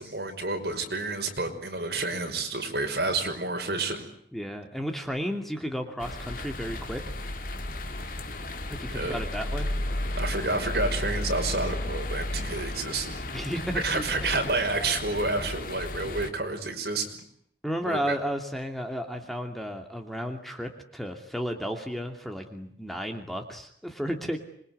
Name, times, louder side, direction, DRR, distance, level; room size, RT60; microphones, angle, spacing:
voice 1, 0.0-4.1 8.9-9.2 10.2-13.2 13.7-17.2 17.8-18.2, right 3 dB, 60° right, 5 dB, 5.6 m, -29 dB
voice 2, 4.3-7.4 8.7-9.7 13.3-14.0 17.6-24.4, equal, ahead, 4 dB, 2.7 m, -33 dB
sound 1, 6.0-16.3, left 1 dB, 50° left, 2.6 m, -33 dB
27.0 x 23.0 x 9.6 m, 0.68 s
head